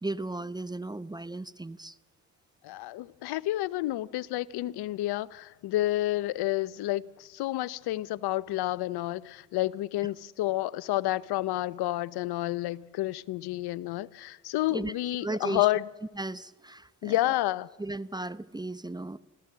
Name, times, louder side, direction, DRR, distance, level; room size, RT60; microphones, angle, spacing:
voice 1, 0.0-2.0 14.7-14.9 15.2-15.7 16.1-17.2 17.8-19.2, right 2 dB, 10° right, 0.7 m, -35 dB
voice 2, 2.6-15.8 17.0-17.7, left 16 dB, 70° left, 0.8 m, -30 dB
27.0 x 15.5 x 7.4 m
supercardioid pair, 60°, 40 cm